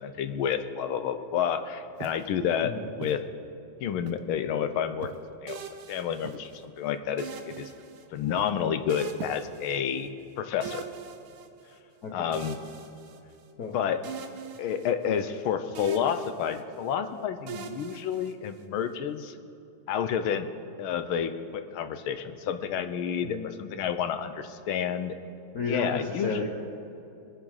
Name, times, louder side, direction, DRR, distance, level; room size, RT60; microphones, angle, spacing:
voice 1, 0.0-3.2 3.8-5.1 5.4-5.6 5.9-7.7 8.1-10.1 10.4-10.8 12.1-12.6 13.7-14.0 14.6-19.3 19.9-20.5 20.8-25.2 25.6-26.5, left 8 dB, 80° left, 10 dB, 1.7 m, -30 dB
Walk footsteps, 1.9-2.3 3.0-3.2 4.1-4.4 5.0-5.4 6.2-6.6 7.5-8.0 8.4-8.7 9.2-9.7 10.6-11.1, right 10 dB, 70° right, 1.0 m, -44 dB
sound 1, 5.5-6.6 7.2-8.3 8.9-10.3 10.6-11.8 12.3-13.7 14.0-15.4 15.7-16.9 17.5-18.8, right 7 dB, 90° right, 1.9 m, -43 dB
voice 2, 12.0-12.4 13.6-13.8 23.2-23.5 25.5-26.5, left 3 dB, 50° left, 0 dB, 1.4 m, -32 dB
22.5 x 11.0 x 4.9 m, 2.9 s
omnidirectional pair, 2.3 m